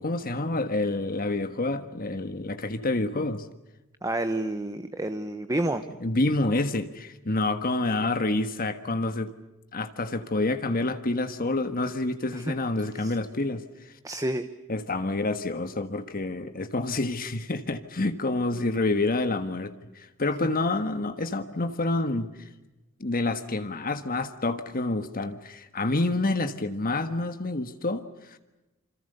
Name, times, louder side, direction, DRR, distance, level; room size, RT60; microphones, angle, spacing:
voice 1, 0.0-3.5 6.0-9.3 9.7-13.9 14.7-22.3 23.0-28.4, left 2 dB, 40° left, 9 dB, 1.5 m, -28 dB
voice 2, 4.0-5.9 12.3-12.5 13.0-13.2 14.0-14.5, right 1 dB, 15° right, 9 dB, 1.0 m, -29 dB
27.5 x 26.5 x 6.8 m, 1.0 s
head